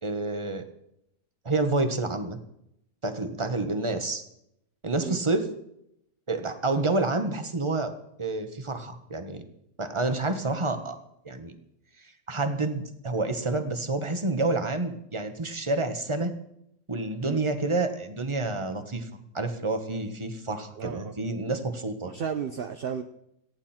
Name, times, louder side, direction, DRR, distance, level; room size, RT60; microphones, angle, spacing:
voice 1, 0.0-0.6 1.4-2.4 3.0-4.2 4.8-5.5 6.3-7.9 8.2-9.4 9.8-10.9 11.2-11.5 12.3-16.3 16.9-22.1, right 2 dB, 20° right, 8 dB, 1.3 m, -28 dB
voice 2, 20.8-21.1 22.0-23.0, right 7 dB, 50° right, 8 dB, 0.7 m, -33 dB
18.5 x 14.0 x 4.4 m, 0.76 s
omnidirectional pair, 1.7 m